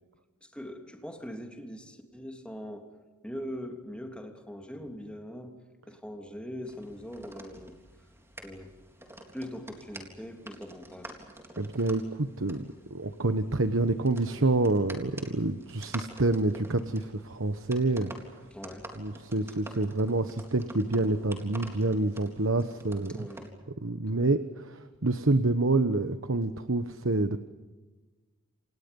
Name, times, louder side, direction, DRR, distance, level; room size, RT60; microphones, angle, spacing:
voice 1, 0.4-2.9 3.2-5.5 5.9-7.8 8.4-8.7 9.3-11.1 18.5-18.9 19.7-19.8 23.1-23.5, equal, 5° left, 3 dB, 3.2 m, -41 dB
sound 1, 6.6-23.5, right 1 dB, 10° right, 3.8 m, -48 dB
voice 2, 11.6-18.1 19.0-23.1 23.8-27.4, right 2 dB, 60° right, 9 dB, 1.2 m, -27 dB
28.5 x 28.5 x 5.5 m, 1.2 s
head